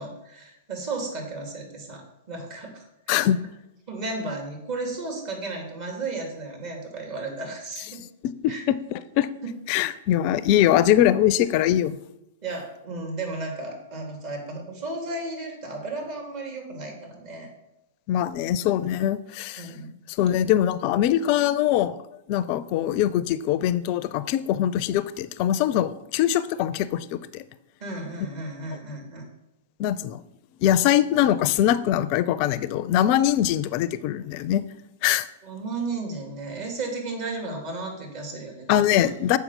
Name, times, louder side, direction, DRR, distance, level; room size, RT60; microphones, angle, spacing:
voice 1, 0.0-3.3 3.9-8.0 8.5-8.6 9.4-9.5 12.4-17.5 19.6-19.9 27.8-29.2 35.4-38.9, right 3 dB, 50° right, 1 dB, 2.4 m, -34 dB
voice 2, 3.1-3.4 8.2-9.3 9.7-12.0 18.1-19.7 20.2-22.0 22.3-27.4 29.8-30.2 30.6-34.6 35.0-35.3 38.7-39.4, left 11 dB, 45° left, 16 dB, 0.4 m, -22 dB
7.2 x 4.6 x 5.5 m, 0.87 s
hypercardioid pair, 105°, 0 cm